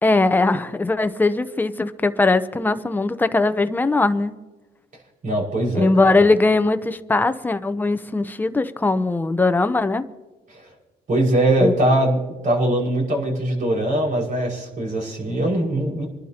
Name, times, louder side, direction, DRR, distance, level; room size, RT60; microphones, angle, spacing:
voice 1, 0.0-4.3 5.7-10.0 11.6-11.7, left 3 dB, 10° left, 10 dB, 0.8 m, -20 dB
voice 2, 5.2-6.2 10.5-10.7 11.1-16.1, right 1 dB, 50° right, 0 dB, 5.5 m, -21 dB
26.5 x 12.0 x 2.9 m, 1.2 s
cardioid pair, 110°, 17 cm